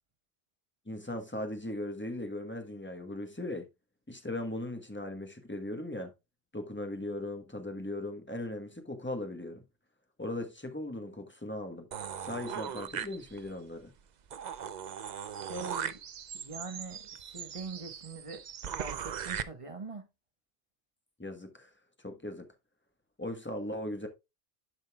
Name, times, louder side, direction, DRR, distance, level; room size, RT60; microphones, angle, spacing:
voice 1, 0.9-3.7 4.1-6.1 6.5-9.6 10.2-11.9 12.2-13.9 21.2-21.7 22.0-22.5 23.2-24.1, left 1 dB, 10° left, 1.2 m, -38 dB
sound 1, 11.9-13.6 14.0-14.1 14.3-19.4, right 8 dB, 50° right, 0.5 m, -39 dB
voice 2, 15.5-16.0 16.3-18.4 18.8-20.1, right 3 dB, 30° right, 1.3 m, -42 dB
11.5 x 5.3 x 2.3 m
omnidirectional pair, 1.2 m